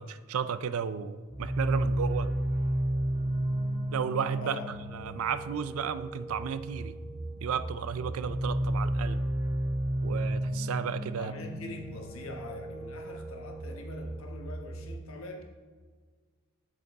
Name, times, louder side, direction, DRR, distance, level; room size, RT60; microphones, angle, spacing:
voice 1, 0.0-2.3 3.9-4.6 4.9-7.0 7.4-9.2 10.0-11.3, right 7 dB, 80° right, 14 dB, 0.4 m, -33 dB
sound 1, 1.3-14.9, right 1 dB, 25° right, 1.5 m, -33 dB
voice 2, 11.2-15.5, left 2 dB, 75° left, 3 dB, 1.2 m, -43 dB
8.4 x 6.8 x 3.6 m, 1.5 s
head